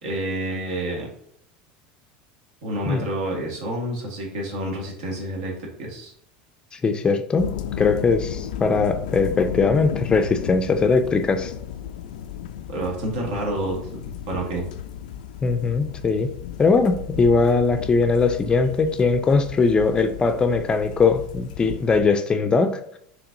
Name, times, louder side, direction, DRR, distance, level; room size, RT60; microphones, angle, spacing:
voice 1, 0.0-1.1 2.6-6.1 12.7-14.7, right 1 dB, 75° right, 0 dB, 1.6 m, -29 dB
voice 2, 6.7-7.5 7.8-11.5 15.4-16.3 16.6-22.8, left 4 dB, 20° left, 7 dB, 0.4 m, -20 dB
sound 1, 7.4-22.0, left 9 dB, 90° left, 0.3 m, -34 dB
5.8 x 3.3 x 2.6 m, 0.71 s
supercardioid pair, 125°, 4 cm